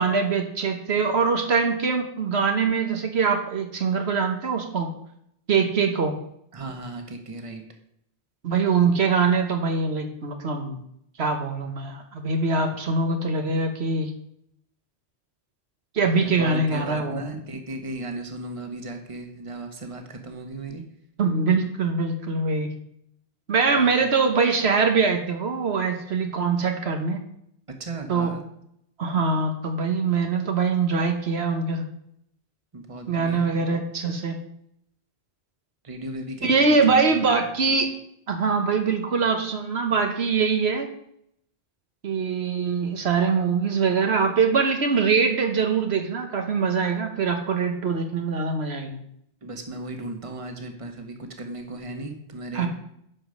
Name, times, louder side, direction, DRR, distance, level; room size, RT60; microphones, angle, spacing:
voice 1, 0.0-4.9 5.5-6.2 8.4-10.8 11.2-14.1 15.9-17.2 21.2-22.7 23.5-27.2 28.1-28.3 29.0-31.8 33.1-34.4 36.4-37.9 38.3-40.9 42.0-49.0 52.5-52.7, right 4 dB, 70° right, 5 dB, 1.3 m, -23 dB
voice 2, 6.5-7.6 12.6-12.7 16.0-20.8 23.8-23.9 27.7-28.4 32.7-33.5 35.8-37.5 49.4-52.7, right 2 dB, 30° right, 4 dB, 1.3 m, -36 dB
10.5 x 5.0 x 6.4 m, 0.73 s
omnidirectional pair, 1.1 m